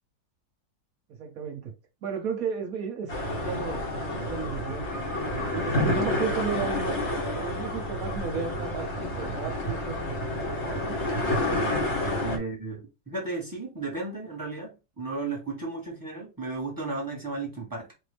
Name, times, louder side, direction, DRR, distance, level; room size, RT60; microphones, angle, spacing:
voice 1, 1.2-1.7 2.0-7.0 7.3-10.0 10.3-11.0, right 6 dB, 60° right, 1.1 m, -35 dB
sound 1, 3.1-12.4, left 1 dB, 45° left, 1.2 m, -29 dB
voice 2, 12.2-17.9, right 3 dB, 15° right, 1.2 m, -34 dB
4.4 x 2.6 x 3.3 m
omnidirectional pair, 2.0 m